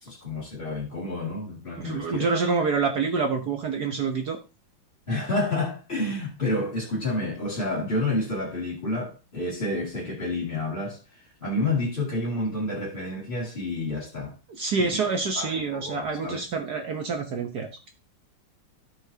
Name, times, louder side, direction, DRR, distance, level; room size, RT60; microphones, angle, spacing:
voice 1, 0.0-2.3 5.1-14.3 14.8-15.0 15.4-16.4, left 2 dB, 25° left, 2.6 m, -29 dB
voice 2, 1.8-4.4 14.5-17.7, right 4 dB, 55° right, 1.4 m, -27 dB
14.0 x 6.0 x 2.8 m
omnidirectional pair, 2.3 m